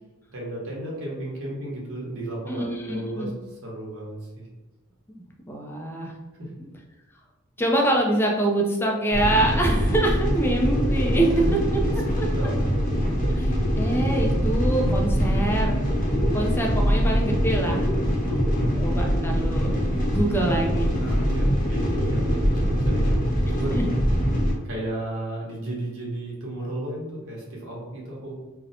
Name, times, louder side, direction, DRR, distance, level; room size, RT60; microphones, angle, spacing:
voice 1, 0.3-4.5 6.4-6.7 11.4-11.5 11.8-12.9 18.2-19.0 20.9-23.9 24.6-28.3, right 1 dB, 70° right, -4 dB, 0.9 m, -34 dB
voice 2, 2.5-3.3 5.1-6.1 7.6-11.8 12.2-12.3 13.4-15.8 16.3-17.9 18.7-19.7 20.1-21.1 23.7-23.8, right 1 dB, 10° left, 0 dB, 0.4 m, -25 dB
sound 1, 9.1-24.5, equal, 40° left, 0.7 m, -23 dB
2.7 x 2.1 x 2.6 m, 1.1 s
head